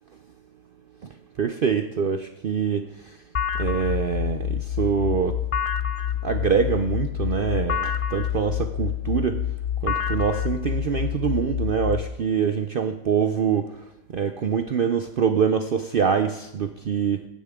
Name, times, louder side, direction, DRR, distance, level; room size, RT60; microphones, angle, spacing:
voice 1, 1.4-2.9 3.6-5.4 6.2-9.4 9.8-13.7 14.1-17.3, right 7 dB, 55° right, 8 dB, 0.7 m, -24 dB
sound 1, 3.3-12.0, left 10 dB, 65° left, 0.3 m, -27 dB
15.5 x 10.0 x 3.6 m, 0.85 s
omnidirectional pair, 1.4 m